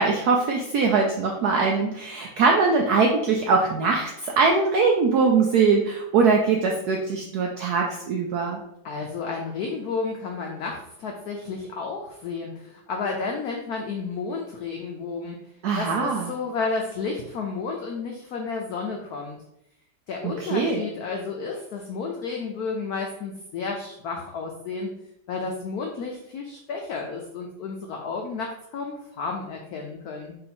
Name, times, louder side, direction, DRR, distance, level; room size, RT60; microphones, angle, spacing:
voice 1, 0.0-8.6 15.6-16.3 20.2-20.8, right 4 dB, 85° right, 1 dB, 0.8 m, -22 dB
voice 2, 8.8-15.4 15.8-19.4 20.1-24.9 25.3-30.4, left 4 dB, 90° left, 1 dB, 0.8 m, -32 dB
3.8 x 2.8 x 4.2 m, 0.80 s
omnidirectional pair, 2.2 m